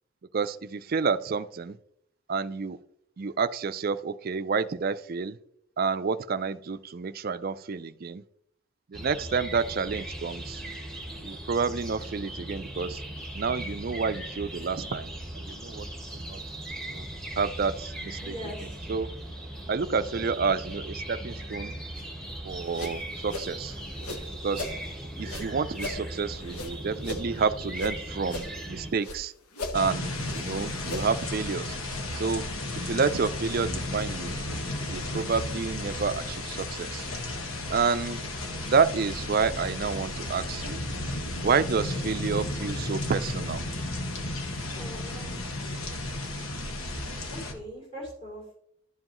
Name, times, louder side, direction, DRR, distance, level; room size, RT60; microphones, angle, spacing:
voice 1, 0.3-1.8 2.3-2.8 3.2-5.4 5.8-8.2 8.9-10.6 11.2-13.0 13.3-15.8 16.1-16.4 16.9-17.1 17.4-18.3 18.9-19.1 19.7-21.7 22.4-23.8 24.4-24.7 25.2-29.3 29.7-31.8 32.2-32.4 32.8-34.4 34.9-37.1 37.7-38.2 38.7-40.8 41.4-43.6, right 5 dB, 40° right, 13 dB, 0.4 m, -29 dB
sound 1, 8.9-28.9, right 1 dB, ahead, 1.2 m, -38 dB
voice 2, 18.2-18.8 44.7-45.4 46.9-48.6, equal, 30° left, -3 dB, 3.3 m, -41 dB
sound 2, 22.5-24.8 25.2-28.0 28.2-29.2 29.5-31.3, left 2 dB, 85° left, 1.2 m, -38 dB
sound 3, 29.7-47.5, left 1 dB, 70° left, 1.4 m, -33 dB
11.5 x 7.6 x 3.0 m, 0.72 s
head